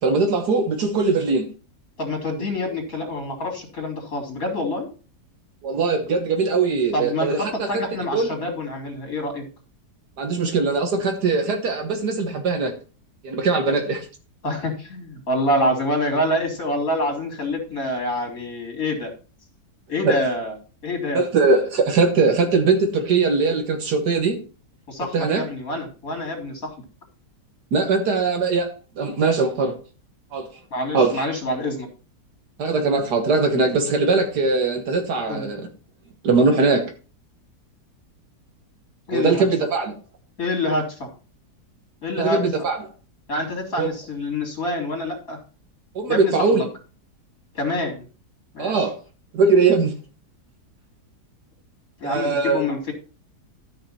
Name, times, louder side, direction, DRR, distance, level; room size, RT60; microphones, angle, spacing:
voice 1, 0.0-1.5 5.6-7.8 8.1-8.3 10.2-12.7 13.2-14.1 20.0-20.2 21.1-24.4 25.1-25.4 27.7-29.7 30.3-30.5 30.9-31.3 32.6-35.7 36.2-36.9 39.1-40.0 42.2-42.8 43.8-43.9 46.0-46.7 48.6-49.0 49.3-49.9 52.0-52.6, right 4 dB, 70° right, 5 dB, 1.8 m, -21 dB
voice 2, 2.0-4.9 6.9-9.4 14.4-19.1 19.9-20.6 20.8-21.2 24.9-26.7 30.7-31.9 35.3-35.5 39.1-39.4 40.4-41.1 42.0-42.4 43.3-45.4 46.1-46.7 47.5-48.0 48.5-48.9 52.0-52.9, left 1 dB, 55° left, 3 dB, 3.1 m, -26 dB
13.0 x 5.8 x 4.2 m, 0.35 s
omnidirectional pair, 1.8 m